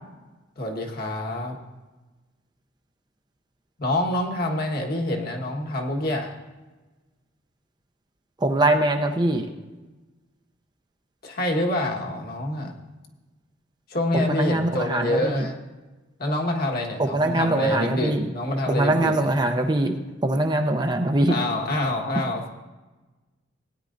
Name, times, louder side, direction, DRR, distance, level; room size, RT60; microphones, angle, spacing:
voice 1, 0.6-1.5 3.8-6.3 11.2-12.7 13.9-15.6 16.2-19.3 21.3-22.5, left 1 dB, 50° left, 1 dB, 1.4 m, -26 dB
voice 2, 8.4-9.5 14.1-15.5 17.0-18.2 18.7-19.9 20.2-21.4, right 1 dB, 20° right, 5 dB, 0.6 m, -22 dB
17.5 x 9.7 x 2.6 m, 1.2 s
head